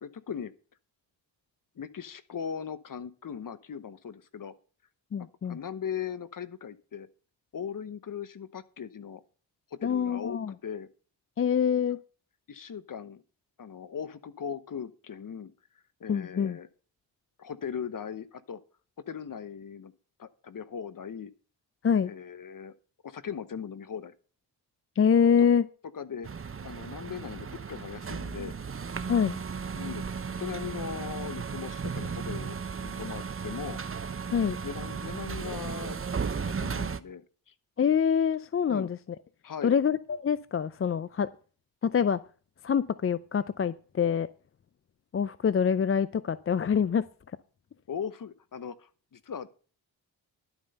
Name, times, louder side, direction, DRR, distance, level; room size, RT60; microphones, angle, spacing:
voice 1, 0.0-0.5 1.8-4.5 5.2-7.1 7.5-9.2 9.7-10.9 12.5-13.2 13.6-15.5 16.0-16.7 17.4-18.6 19.1-19.9 20.2-21.3 22.0-22.7 23.0-24.1 25.9-26.3 26.6-28.5 29.7-33.8 34.6-36.0 36.3-37.5 38.7-38.9 39.4-39.7 47.9-49.5, left 7 dB, 45° left, 14 dB, 1.0 m, -39 dB
voice 2, 5.1-5.6 9.8-10.5 11.4-12.0 16.1-16.6 21.8-22.1 25.0-25.6 29.1-29.4 34.3-34.6 37.8-39.0 39.6-41.3 41.8-42.2 42.6-44.3 45.1-47.0, left 7 dB, 30° left, 16 dB, 0.5 m, -25 dB
sound 1, 26.2-37.0, right 5 dB, 30° right, 0.8 m, -35 dB
11.5 x 7.7 x 5.4 m, 0.40 s
supercardioid pair, 55°, 44 cm